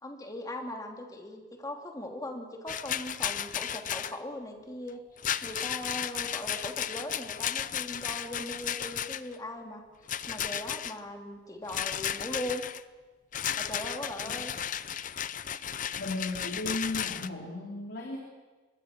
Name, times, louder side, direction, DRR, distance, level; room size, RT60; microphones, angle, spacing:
voice 1, 0.0-5.0 5.4-9.8 10.3-12.6 13.6-14.6, left 1 dB, 20° left, 2 dB, 2.9 m, -39 dB
Rattle, 2.7-4.2 5.2-9.4 10.1-11.0 11.7-12.8 13.3-17.3, left 9 dB, 45° left, 0.6 m, -34 dB
voice 2, 16.0-18.2, left 2 dB, 70° left, -1 dB, 3.6 m, -35 dB
25.0 x 21.5 x 6.1 m, 1.3 s
head